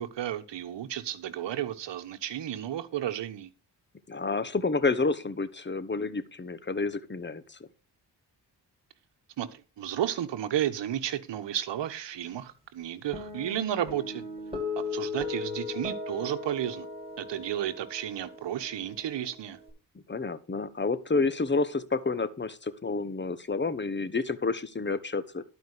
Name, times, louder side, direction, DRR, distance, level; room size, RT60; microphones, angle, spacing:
voice 1, 0.0-3.5 9.4-14.2 14.9-16.9 17.2-19.6, right 11 dB, 75° right, 1.3 m, -32 dB
voice 2, 4.1-7.6 20.1-25.4, left 3 dB, 25° left, 1.3 m, -29 dB
Guitar, 13.1-19.7, left 4 dB, 15° right, 6.3 m, -38 dB
12.0 x 5.1 x 6.6 m
cardioid pair, 60°, 43 cm